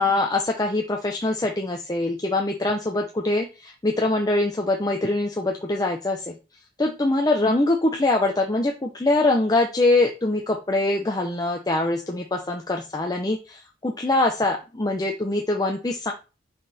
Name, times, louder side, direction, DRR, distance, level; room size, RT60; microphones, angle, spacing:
voice 1, 0.0-6.3 6.8-16.1, left 2 dB, 20° left, 2 dB, 0.8 m, -23 dB
5.8 x 5.4 x 4.2 m, 0.30 s
head